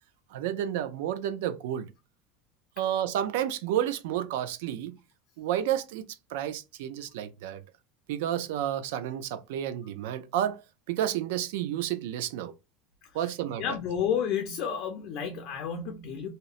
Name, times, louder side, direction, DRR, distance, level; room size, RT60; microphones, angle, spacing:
voice 1, 0.3-1.9 2.8-4.9 5.4-6.1 6.3-7.6 8.1-10.6 10.9-12.5 13.1-13.6, right 11 dB, 75° right, 0.3 m, -30 dB
voice 2, 13.6-16.3, left 8 dB, 40° left, 0.4 m, -31 dB
2.8 x 2.0 x 2.3 m
cardioid pair, 180°, 0 cm